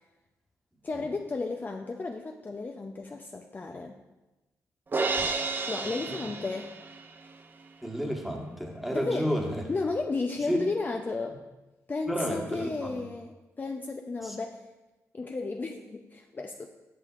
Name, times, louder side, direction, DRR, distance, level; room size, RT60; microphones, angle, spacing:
voice 1, 0.8-4.0 5.7-6.7 8.9-9.3 9.7-11.4 11.9-14.6 15.1-16.7, left 3 dB, 30° left, 2 dB, 0.5 m, -33 dB
Crash cymbal, 4.9-7.2, right 3 dB, 35° right, 0.6 m, -31 dB
voice 2, 7.8-9.6 10.5-10.6 12.1-13.0 14.2-14.4, equal, 5° right, 0 dB, 1.3 m, -31 dB
10.0 x 6.1 x 2.5 m, 1.1 s
cardioid pair, 70°, 6 cm